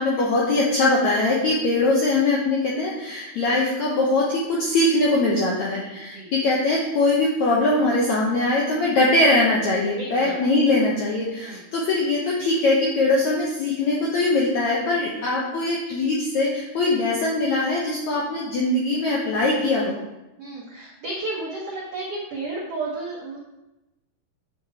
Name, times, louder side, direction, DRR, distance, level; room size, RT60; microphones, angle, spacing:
voice 1, 0.0-20.0, left 2 dB, 80° left, -4 dB, 1.6 m, -22 dB
voice 2, 5.7-6.3 9.9-10.4 11.4-11.6 15.1-15.3 18.1-18.3 20.4-23.4, right 2 dB, 90° right, -4 dB, 1.3 m, -33 dB
7.7 x 4.7 x 4.8 m, 0.97 s
omnidirectional pair, 4.6 m